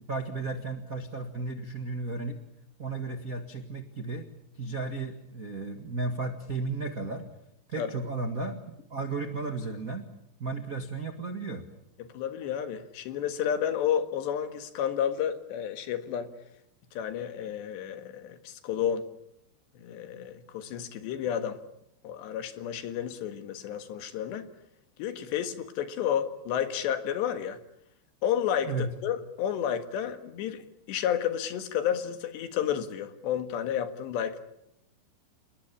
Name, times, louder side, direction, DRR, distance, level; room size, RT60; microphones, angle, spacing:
voice 1, 0.1-2.4 2.8-4.3 4.6-7.2 7.7-8.6 8.9-10.0 10.4-11.6 28.6-28.9, right 3 dB, 80° right, 4 dB, 0.7 m, -34 dB
voice 2, 12.0-16.3 16.9-19.1 19.8-21.6 22.0-24.5 25.0-27.6 28.2-34.4, left 9 dB, 75° left, 9 dB, 3.8 m, -31 dB
28.0 x 20.5 x 8.7 m, 0.80 s
omnidirectional pair, 5.1 m